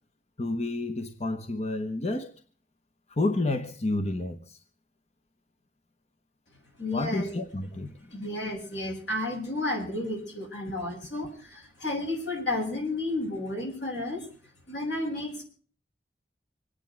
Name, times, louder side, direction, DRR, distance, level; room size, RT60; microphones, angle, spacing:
voice 1, 0.4-2.3 3.1-4.6 6.9-7.9, left 2 dB, 35° left, 1.1 m, -30 dB
voice 2, 6.8-7.3 8.1-14.3 14.7-15.4, left 2 dB, 80° left, 7.1 m, -32 dB
25.5 x 9.6 x 4.5 m
head